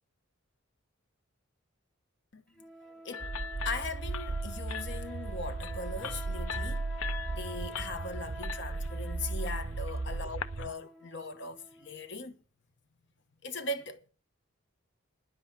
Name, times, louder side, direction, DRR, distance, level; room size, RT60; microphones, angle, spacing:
sound 1, 2.5-12.2, right 1 dB, ahead, 1.0 m, -48 dB
voice 1, 2.8-3.3 3.6-6.9 7.3-12.4 13.4-14.1, left 3 dB, 55° left, 1.0 m, -40 dB
sound 2, 3.1-10.6, left 7 dB, 75° left, 0.6 m, -43 dB
sound 3, 3.2-10.7, right 3 dB, 50° right, 0.6 m, -36 dB
10.5 x 8.0 x 7.3 m
head